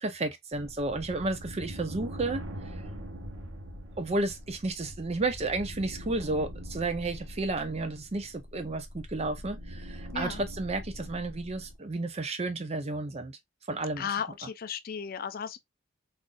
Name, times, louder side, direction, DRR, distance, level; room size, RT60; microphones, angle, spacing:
voice 1, 0.0-2.4 4.0-13.4 13.7-14.1, right 2 dB, 30° right, 0.5 m, -32 dB
sound 1, 0.5-11.8, equal, 70° right, 1.0 m, -42 dB
voice 2, 10.1-10.4 14.0-15.6, left 7 dB, 45° left, 0.4 m, -35 dB
3.9 x 2.6 x 2.3 m
head